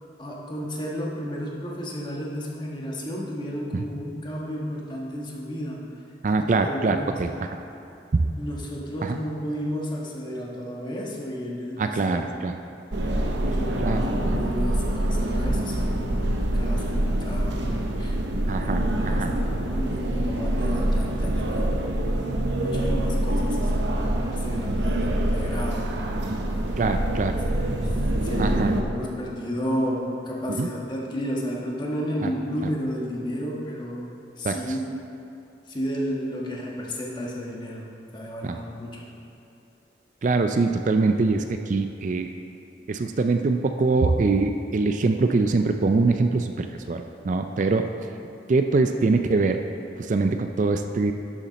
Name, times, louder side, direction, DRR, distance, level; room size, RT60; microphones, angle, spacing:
voice 1, 0.2-5.8 6.4-7.1 8.4-12.3 13.5-18.2 18.6-21.7 22.6-25.9 27.2-27.9 28.2-34.0 34.4-34.8 35.7-39.0, equal, 25° left, -3 dB, 1.4 m, -32 dB
voice 2, 6.2-7.5 8.1-8.3 9.0-9.2 11.8-12.6 13.8-14.0 14.3-14.4 18.5-19.3 26.8-27.4 28.4-28.8 30.6-30.7 32.2-32.3 34.4-34.6 38.4-38.6 40.2-42.3 42.9-47.9 48.5-49.6 50.1-51.1, right 3 dB, 45° right, 6 dB, 0.4 m, -23 dB
sound 1, 12.9-28.8, right 1 dB, 75° right, 0.8 m, -25 dB
11.5 x 7.2 x 4.0 m, 2.7 s
head